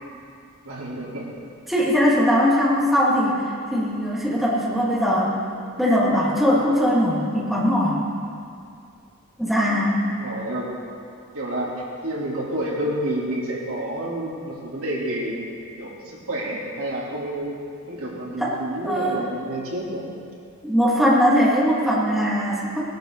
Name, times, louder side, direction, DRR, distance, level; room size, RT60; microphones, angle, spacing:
voice 1, 0.6-1.3 10.2-10.7 11.3-11.7 12.0-15.4 15.8-17.6 17.9-20.1, right 1 dB, 75° right, -5 dB, 3.5 m, -29 dB
voice 2, 1.7-5.4 5.8-8.0 9.4-10.0 18.4-18.5 18.8-19.2 20.6-22.8, equal, ahead, -7 dB, 2.4 m, -20 dB
20.5 x 11.5 x 4.1 m, 2.4 s
head